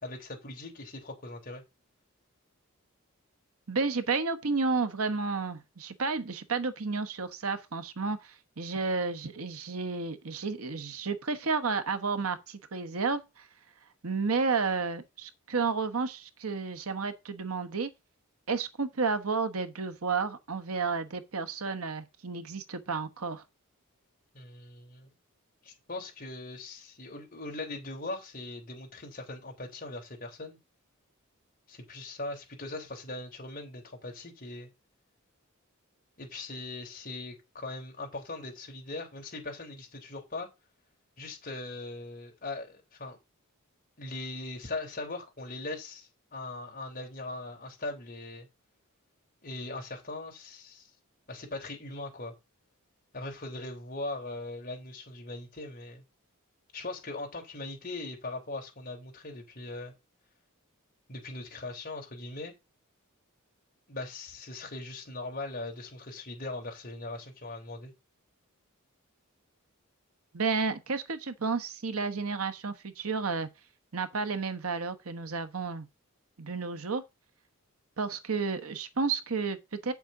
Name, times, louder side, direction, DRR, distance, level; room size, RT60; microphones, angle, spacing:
voice 1, 0.0-1.6 24.3-25.1 25.6-30.6 31.7-34.7 36.2-40.5 41.2-43.2 44.0-48.5 49.4-50.9 51.3-52.3 53.1-56.0 56.7-59.9 61.1-62.5 63.9-67.9, left 2 dB, 40° left, 3.5 m, -40 dB
voice 2, 3.7-13.5 14.0-17.9 18.5-23.4 70.3-73.5 73.9-75.9 76.4-77.0 78.0-79.9, right 4 dB, 80° right, 1.1 m, -31 dB
8.3 x 7.1 x 3.8 m
head